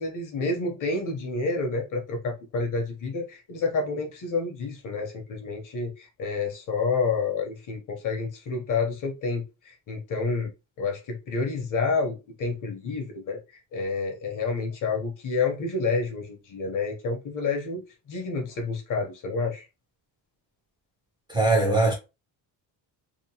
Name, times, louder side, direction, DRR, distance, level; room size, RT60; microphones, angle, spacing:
voice 1, 0.0-10.5 10.8-13.4 13.7-19.7, left 4 dB, 45° left, 0.8 m, -29 dB
voice 2, 21.3-21.9, right 2 dB, 10° right, 0.4 m, -21 dB
2.9 x 2.1 x 2.7 m
cardioid pair, 170°, 44 cm